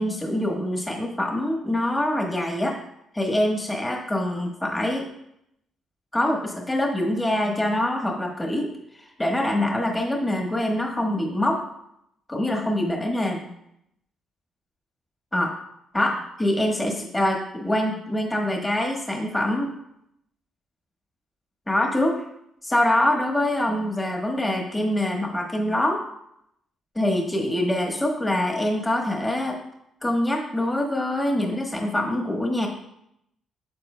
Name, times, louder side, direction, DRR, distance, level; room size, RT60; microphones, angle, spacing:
voice 1, 0.0-2.8 3.1-5.1 6.1-8.7 8.9-11.6 12.3-13.5 15.3-15.5 15.9-19.7 21.7-22.2 22.6-26.0 26.9-29.6 30.0-32.7, left 1 dB, 15° left, 1 dB, 1.2 m, -24 dB
9.2 x 7.1 x 2.2 m, 0.78 s
cardioid pair, 90°, 0 cm